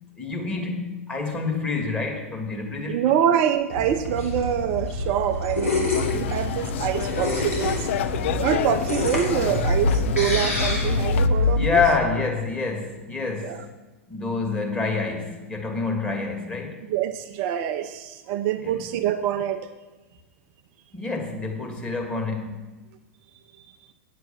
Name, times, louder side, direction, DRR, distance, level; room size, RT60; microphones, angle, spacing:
voice 1, 0.2-3.0 11.5-13.7 14.1-16.8 18.6-18.9 20.9-22.6, left 4 dB, 15° left, 1 dB, 2.3 m, -27 dB
voice 2, 2.9-7.9 8.4-11.8 13.4-13.6 16.9-19.7, right 10 dB, 45° right, 8 dB, 0.6 m, -25 dB
sound 1, 3.7-11.8, left 2 dB, 85° left, 2.9 m, -26 dB
sound 2, 5.9-11.3, left 10 dB, 60° left, 0.6 m, -29 dB
9.3 x 7.7 x 7.1 m, 1.2 s
figure-of-eight pair, 95°, 7 cm